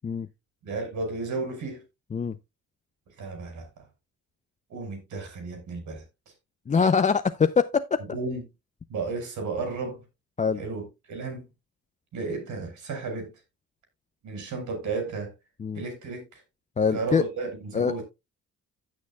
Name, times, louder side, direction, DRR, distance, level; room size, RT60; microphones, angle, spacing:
voice 1, 0.6-1.8 3.2-3.8 4.7-6.0 8.1-8.4 8.9-10.0 10.6-11.4 12.1-13.3 14.2-15.3 15.8-16.4 16.9-18.0, right 4 dB, 70° right, 5.4 m, -33 dB
voice 2, 6.7-8.0 10.4-10.6 15.6-15.8 16.8-17.2 17.7-17.9, left 5 dB, 25° left, 0.5 m, -23 dB
15.5 x 6.4 x 2.3 m
cardioid pair, 90°, 30 cm